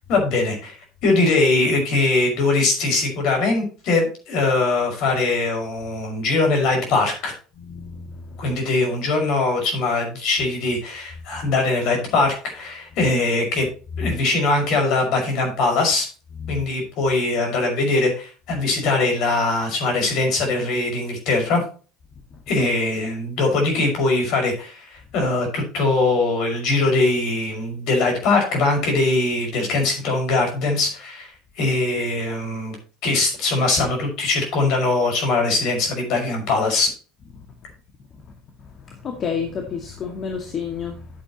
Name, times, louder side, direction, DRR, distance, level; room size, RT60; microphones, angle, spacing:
voice 1, 0.1-7.3 8.4-13.7 14.0-16.1 16.5-21.6 22.5-32.8 33.0-36.9, left 3 dB, 60° left, 5.8 m, -21 dB
voice 2, 7.6-8.4 11.3-11.4 13.0-13.1 14.0-14.1 16.4-16.6 22.3-22.4 38.6-41.1, left 6 dB, 45° left, 2.2 m, -30 dB
11.5 x 8.2 x 3.1 m
hypercardioid pair, 70°, 0 cm